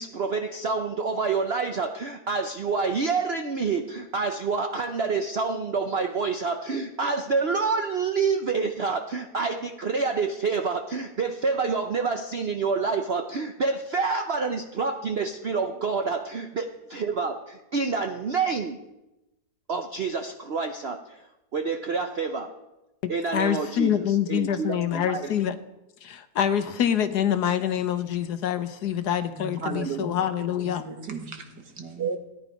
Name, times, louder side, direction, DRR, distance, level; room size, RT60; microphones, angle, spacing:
voice 1, 0.0-18.8 19.7-21.2 21.5-22.5 23.1-25.3 29.6-30.1 32.0-32.2, right 4 dB, 50° right, 6 dB, 0.8 m, -28 dB
voice 2, 23.0-25.6 26.0-30.8, left 9 dB, 70° left, 11 dB, 1.4 m, -26 dB
voice 3, 29.4-30.3 30.6-32.1, right 3 dB, 70° right, 5 dB, 2.2 m, -39 dB
16.5 x 10.5 x 5.2 m, 0.98 s
omnidirectional pair, 1.9 m